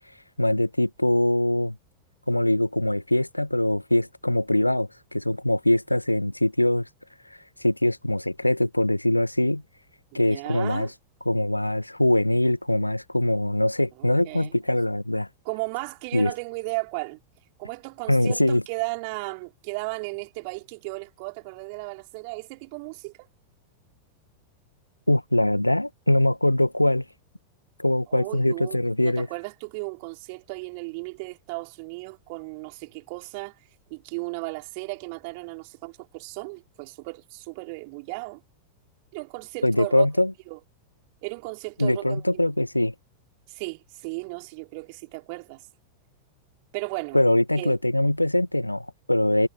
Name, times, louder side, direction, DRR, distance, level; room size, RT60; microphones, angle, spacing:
voice 1, 0.4-1.8 2.3-6.9 7.6-9.6 10.1-10.9 11.3-15.3 16.1-16.3 18.1-18.6 25.1-27.0 27.8-29.3 39.6-40.3 41.8-42.9 47.1-49.5, left 1 dB, 85° left, 1.8 m, -22 dB
voice 2, 10.1-10.9 14.0-14.5 15.4-17.2 17.6-23.3 28.1-33.5 33.9-38.4 39.1-40.1 40.5-40.6 41.2-42.2 43.5-45.6 46.7-47.2 47.5-47.8, right 31 dB, 45° right, 4.2 m, -35 dB
figure-of-eight pair, 90°, 0 cm